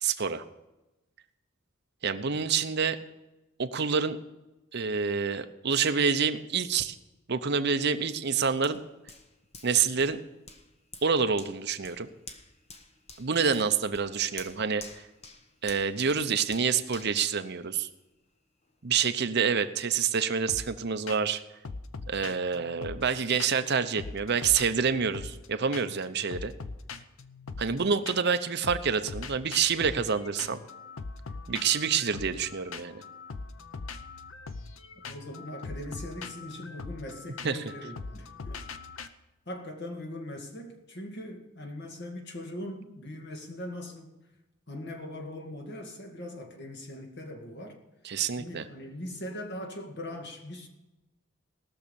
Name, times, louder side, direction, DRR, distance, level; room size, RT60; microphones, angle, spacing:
voice 1, 0.0-0.4 2.0-3.0 3.6-4.2 4.7-7.0 7.3-8.8 9.6-10.2 11.0-12.1 13.2-14.8 15.6-17.9 18.8-21.4 22.1-26.5 27.6-30.6 31.5-33.0 37.4-37.6 48.0-48.7, right 6 dB, 50° right, 0.7 m, -27 dB
Hands, 8.6-18.2 18.6-18.8, left 4 dB, 30° left, 1.1 m, -50 dB
sound 1, 20.5-20.8 21.1-21.4 21.6-23.7 24.0-25.5 25.7-26.0 26.3-28.4 28.6-39.1, left 4 dB, 70° left, 0.7 m, -41 dB
voice 2, 35.0-38.6 39.5-44.2 44.7-47.8 48.4-50.7, left 1 dB, 55° left, 2.1 m, -40 dB
18.5 x 6.5 x 6.9 m
head